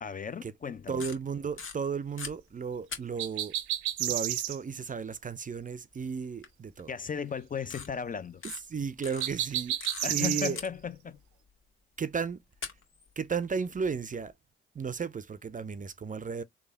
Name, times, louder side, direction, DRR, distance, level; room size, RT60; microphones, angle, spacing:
voice 1, 0.0-1.0 6.9-8.4 10.0-11.2, left 6 dB, 30° left, 0.4 m, -35 dB
voice 2, 0.9-3.5 4.0-6.9 8.7-9.8 10.1-10.6 12.0-12.4 13.2-14.3 14.7-16.4, right 6 dB, 30° right, 0.5 m, -34 dB
sound 1, 1.0-2.3 2.9-3.5 5.2-5.3 6.4-6.5 6.8-6.9 7.6-7.9 8.4-8.6 9.0-10.3 10.6-11.2 12.3-12.4 12.6-14.3, left 5 dB, 45° left, 1.5 m, -41 dB
sound 2, 3.2-4.6 9.2-10.5, right 13 dB, 80° right, 0.6 m, -31 dB
3.3 x 2.2 x 3.4 m
hypercardioid pair, 45°, 29 cm